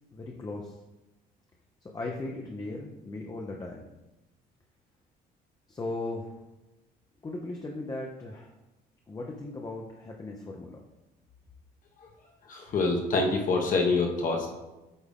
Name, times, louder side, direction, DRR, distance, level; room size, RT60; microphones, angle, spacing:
voice 1, 0.1-0.7 1.9-3.9 5.7-6.3 7.2-8.5 9.1-10.8, left 2 dB, 20° left, 0 dB, 0.7 m, -37 dB
voice 2, 12.5-14.5, left 3 dB, 50° left, 1 dB, 1.2 m, -26 dB
8.1 x 3.5 x 3.6 m, 1.0 s
cardioid pair, 110°, 17 cm